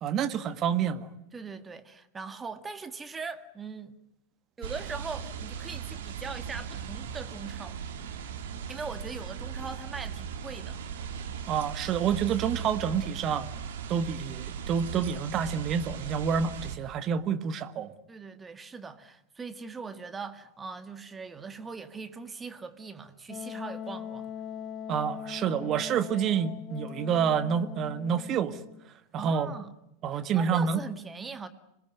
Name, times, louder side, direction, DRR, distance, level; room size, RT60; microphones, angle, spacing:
voice 1, 0.0-1.1 11.5-13.5 13.9-17.9 24.9-28.6 29.1-29.5 30.0-30.8, right 7 dB, 30° right, 1.6 m, -28 dB
voice 2, 1.3-3.9 4.6-7.8 8.7-10.8 18.1-24.3 29.2-29.7 30.1-31.5, right 4 dB, 15° right, 1.8 m, -40 dB
sound 1, 4.6-16.8, right 7 dB, 55° right, 2.8 m, -38 dB
Wind instrument woodwind instrument, 23.3-28.8, left 7 dB, 25° left, 1.2 m, -41 dB
27.0 x 21.0 x 9.6 m
figure-of-eight pair, 90°, 0 cm